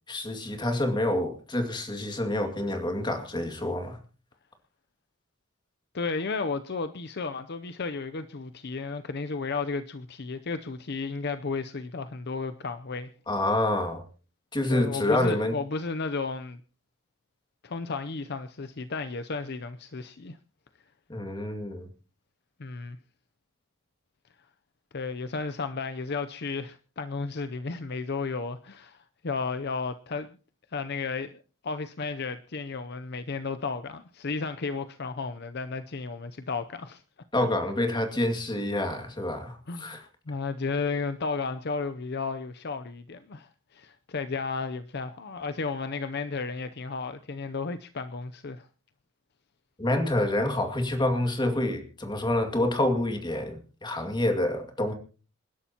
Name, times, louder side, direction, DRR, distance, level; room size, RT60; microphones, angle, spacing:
voice 1, 0.1-4.0 13.3-14.0 14.5-15.6 21.1-21.9 37.3-40.0 49.8-54.9, left 1 dB, 20° left, 2.2 m, -27 dB
voice 2, 5.9-13.1 14.7-16.6 17.6-20.4 22.6-23.0 24.9-29.0 29.2-30.4 30.7-37.0 39.7-48.7, left 4 dB, 55° left, 0.7 m, -33 dB
28.0 x 11.5 x 2.9 m
head